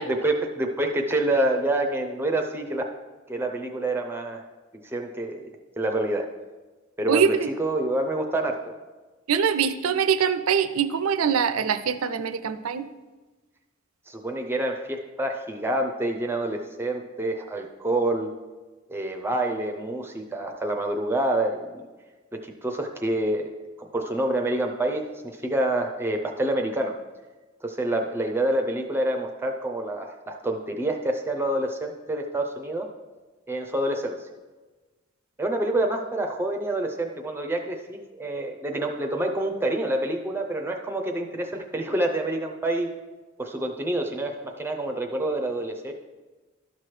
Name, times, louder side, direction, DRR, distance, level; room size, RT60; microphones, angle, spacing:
voice 1, 0.0-2.9 3.3-4.4 4.8-5.5 5.8-6.3 7.0-8.6 14.1-18.3 18.9-21.8 22.3-23.5 23.8-26.9 27.6-32.9 33.5-34.3 35.4-42.9 43.4-45.9, right 1 dB, 10° right, 3 dB, 0.5 m, -27 dB
voice 2, 7.1-7.5 9.3-12.8, right 7 dB, 85° right, 12 dB, 0.5 m, -23 dB
12.0 x 6.0 x 3.2 m, 1.3 s
head